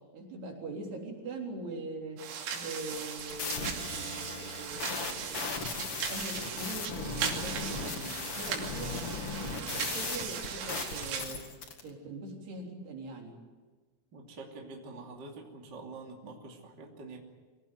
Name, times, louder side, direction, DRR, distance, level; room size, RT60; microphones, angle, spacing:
voice 1, 0.1-2.3 2.5-5.6 5.9-9.1 9.4-11.4 11.8-13.3, right 3 dB, 55° right, 0 dB, 5.6 m, -42 dB
sound 1, 2.2-11.2, right 7 dB, 75° right, 5.3 m, -38 dB
sound 2, 2.8-11.8, left 4 dB, 65° left, 1.4 m, -37 dB
voice 2, 14.1-17.2, right 3 dB, 30° right, 0 dB, 2.3 m, -46 dB
25.5 x 17.5 x 9.5 m, 1.3 s
omnidirectional pair, 6.0 m